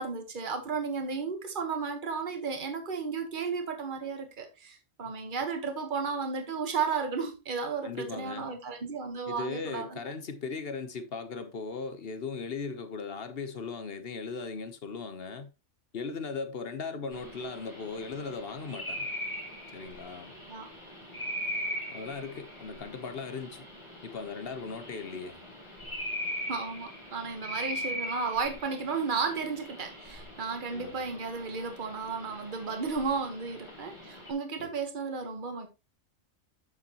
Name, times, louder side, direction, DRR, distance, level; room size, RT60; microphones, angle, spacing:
voice 1, 0.0-10.0 20.5-20.7 26.5-35.7, right 5 dB, 40° right, 1.4 m, -33 dB
voice 2, 7.8-8.5 9.3-15.5 15.9-19.1 19.7-20.3 21.9-23.7 24.0-25.4 30.7-31.0 34.6-34.7, left 4 dB, 55° left, 1.1 m, -38 dB
sound 1, 17.1-34.3, equal, 20° left, 2.4 m, -40 dB
8.6 x 6.9 x 2.9 m
omnidirectional pair, 1.3 m